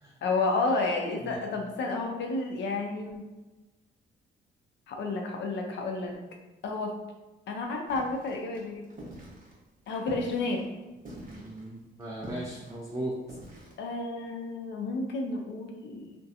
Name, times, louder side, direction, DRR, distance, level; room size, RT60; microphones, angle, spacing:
voice 1, 0.2-3.2 4.9-6.2 6.6-7.0 7.5-8.8 9.9-10.6 13.8-16.1, left 3 dB, 65° left, 3 dB, 0.5 m, -31 dB
sound 1, 7.9-13.7, equal, 45° right, 0.9 m, -45 dB
voice 2, 11.3-13.2, right 1 dB, 15° right, -4 dB, 0.4 m, -37 dB
2.7 x 2.1 x 2.4 m, 1.1 s
cardioid pair, 90°, 20 cm